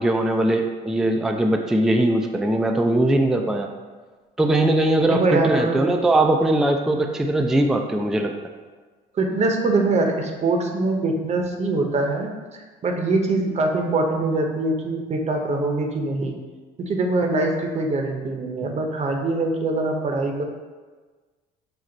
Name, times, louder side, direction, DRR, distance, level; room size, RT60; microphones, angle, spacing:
voice 1, 0.0-3.7 4.4-8.3, right 1 dB, 5° right, 4 dB, 0.3 m, -20 dB
voice 2, 5.1-6.0 9.1-12.3 12.8-16.4 16.8-20.4, right 2 dB, 40° right, 3 dB, 0.7 m, -23 dB
6.0 x 2.1 x 3.8 m, 1.4 s
supercardioid pair, 85°, 18 cm